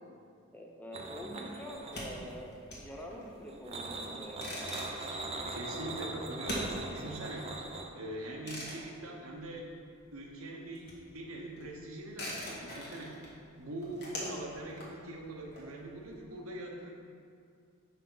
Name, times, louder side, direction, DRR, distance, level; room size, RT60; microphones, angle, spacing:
voice 1, 0.5-4.4, equal, 10° left, 0 dB, 0.6 m, -45 dB
sound 1, 0.9-2.4 3.5-7.9, right 2 dB, 30° right, 0.5 m, -41 dB
sound 2, 1.8-10.1 10.4-16.1, left 1 dB, 55° left, 1.4 m, -44 dB
voice 2, 5.5-7.5 7.9-9.7 10.1-13.1 13.5-16.9, right 1 dB, 85° right, 0 dB, 0.9 m, -42 dB
5.7 x 5.5 x 3.8 m, 2.3 s
head